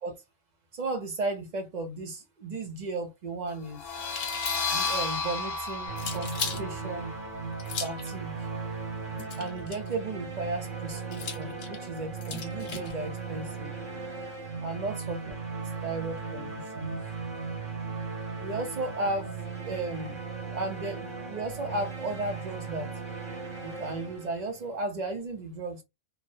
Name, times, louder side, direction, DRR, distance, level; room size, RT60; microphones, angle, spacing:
voice 1, 0.7-3.8 4.7-7.1 7.8-8.4 9.4-13.7 14.6-15.3 15.8-17.0 18.3-19.3 19.6-20.2 20.5-22.9 23.6-25.8, right 2 dB, 45° right, 0.6 m, -35 dB
sound 1, 3.7-9.2, left 4 dB, 55° left, 0.9 m, -34 dB
sound 2, 4.1-5.0 6.0-6.6 7.6-8.1 9.2-9.9 11.1-12.9, left 6 dB, 85° left, 1.1 m, -37 dB
sound 3, 5.9-24.8, right 5 dB, 85° right, 1.5 m, -37 dB
3.0 x 2.1 x 2.6 m
omnidirectional pair, 1.3 m